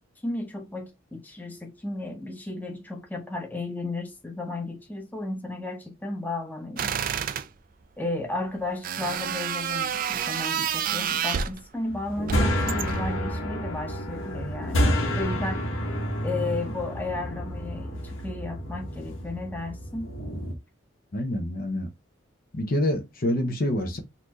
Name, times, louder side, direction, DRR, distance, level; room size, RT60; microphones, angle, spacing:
voice 1, 0.2-6.9 8.0-14.9 15.2-15.6 16.2-20.1, left 2 dB, 10° left, 0.8 m, -34 dB
sound 1, 6.8-7.5 8.8-11.6 12.3-13.1, right 8 dB, 45° right, 0.3 m, -29 dB
sound 2, 11.9-20.5, equal, 85° left, 1.3 m, -29 dB
voice 2, 21.1-21.9 22.5-24.0, left 1 dB, 45° left, 0.8 m, -26 dB
4.1 x 2.7 x 3.0 m
head